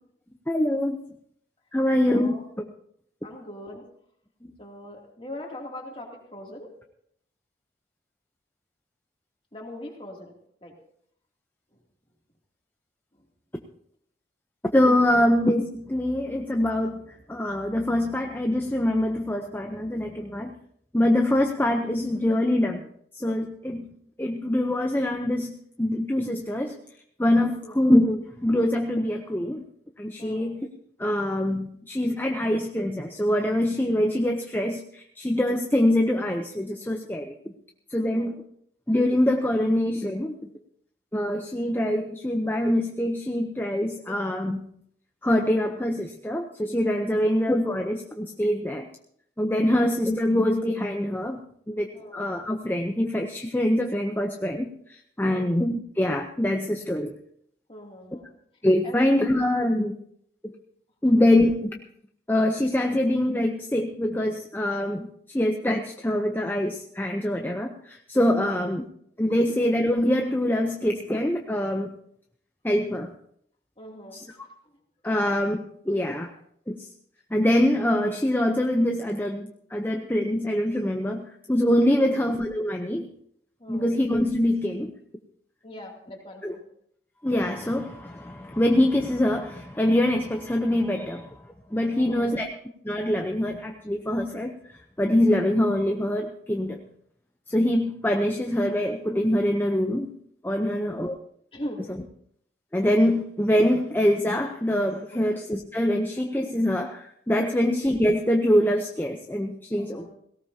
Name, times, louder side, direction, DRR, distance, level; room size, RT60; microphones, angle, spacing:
voice 1, 0.5-1.0 1.7-2.4 4.4-4.5 14.7-20.5 20.9-22.8 23.2-23.9 24.2-25.5 25.8-26.8 27.2-29.6 30.0-30.7 31.0-37.4 37.9-38.4 38.9-40.3 41.1-44.6 45.2-48.9 49.4-51.4 51.7-57.1 58.6-59.9 60.4-60.5 61.0-61.7 62.3-68.8 69.2-71.9 72.6-73.1 74.1-74.2 75.0-76.3 76.7-76.9 77.3-83.1 83.7-84.9 86.4-86.6 87.2-91.4 91.7-92.5 92.8-94.5 95.0-96.8 97.5-100.1 100.4-101.1 101.9-102.0 102.7-110.1, left 1 dB, 10° left, 3 dB, 0.7 m, -24 dB
voice 2, 2.1-2.5 3.2-3.8 4.6-6.7 9.5-10.3 10.6-10.7 15.0-15.3 27.5-27.8 30.2-30.5 37.9-38.3 47.1-47.2 49.7-49.9 51.9-52.3 55.2-55.5 57.7-58.3 58.8-59.1 68.3-68.6 73.8-74.3 81.9-82.2 83.6-83.9 85.6-86.6 91.9-92.4 100.6-101.0 101.5-101.8 105.1-105.3 107.5-107.7 109.8-110.1, left 1 dB, 30° left, 0 dB, 2.8 m, -41 dB
17.5 x 17.5 x 2.8 m, 0.67 s
head